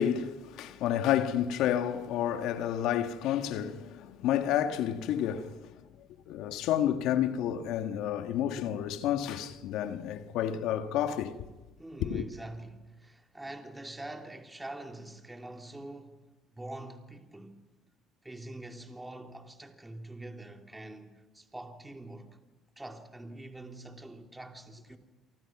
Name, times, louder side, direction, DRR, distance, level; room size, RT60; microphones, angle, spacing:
voice 1, 0.0-5.6 6.3-11.5 12.0-12.2, left 10 dB, 75° left, 1.6 m, -30 dB
voice 2, 11.8-17.6 18.2-22.4 22.8-25.0, right 1 dB, 10° right, 3.0 m, -45 dB
28.0 x 25.0 x 6.0 m
supercardioid pair, 75°, 0 cm